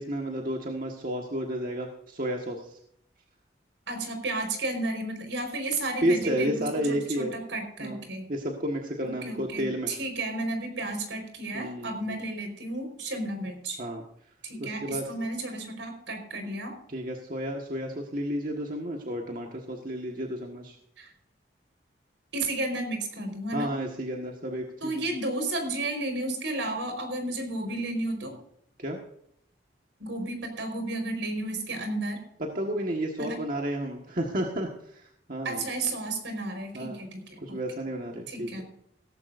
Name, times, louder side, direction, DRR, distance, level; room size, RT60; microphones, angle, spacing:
voice 1, 0.0-2.8 6.0-7.3 7.8-8.0 8.3-9.9 11.5-12.0 13.8-14.0 14.6-15.0 16.9-20.7 23.5-25.0 28.8-29.0 32.4-35.6 36.7-37.0 37.4-38.6, equal, 45° right, 1 dB, 1.6 m, -31 dB
voice 2, 3.9-8.2 9.2-13.8 14.4-16.7 21.0-21.1 22.3-23.7 24.8-28.4 30.0-32.2 33.2-33.4 35.4-37.6 38.3-38.6, right 2 dB, 80° right, 5 dB, 4.8 m, -32 dB
17.0 x 14.5 x 2.6 m, 0.70 s
head